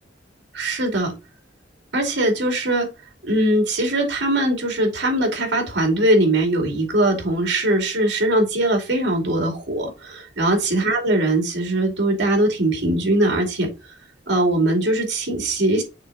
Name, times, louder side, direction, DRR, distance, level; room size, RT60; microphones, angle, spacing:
voice 1, 0.5-1.1 1.9-2.9 3.2-13.7 14.3-15.8, right 1 dB, 70° right, 2 dB, 2.6 m, -21 dB
6.5 x 3.7 x 4.6 m, 0.29 s
head